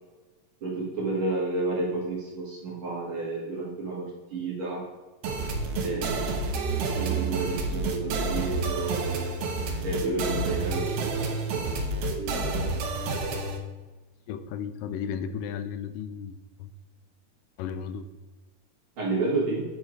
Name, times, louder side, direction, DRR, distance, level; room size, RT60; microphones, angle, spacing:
voice 1, 0.6-4.9 5.8-6.3 6.7-9.0 9.8-11.7 19.0-19.7, right 3 dB, 50° right, -4 dB, 2.0 m, -31 dB
sound 1, 5.2-13.6, right 3 dB, 75° right, 1.4 m, -29 dB
voice 2, 14.3-16.7 17.6-18.1, left 7 dB, 85° left, 10 dB, 2.2 m, -34 dB
9.4 x 4.4 x 4.7 m, 1.2 s
omnidirectional pair, 3.8 m